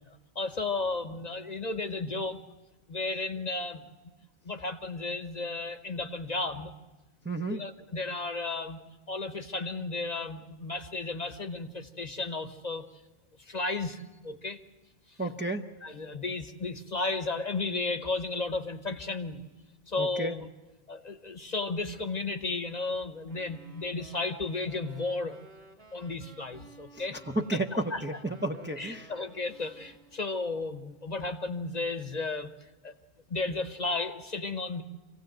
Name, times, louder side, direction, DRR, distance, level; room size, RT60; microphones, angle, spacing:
voice 1, 0.1-2.4 2.9-3.8 4.4-6.7 7.5-8.8 9.1-12.9 13.4-14.6 15.8-19.4 19.9-20.5 20.9-25.4 25.9-27.2 27.5-28.0 28.8-32.5 32.8-32.9 33.3-34.8, left 3 dB, 45° left, 8 dB, 1.0 m, -34 dB
voice 2, 7.2-7.6 15.2-15.7 20.0-20.4 26.9-29.1, right 2 dB, 10° right, 3 dB, 0.8 m, -32 dB
Wind instrument woodwind instrument, 23.3-30.3, right 3 dB, 75° right, 2.3 m, -54 dB
26.0 x 16.5 x 7.8 m, 1.2 s
omnidirectional pair, 1.0 m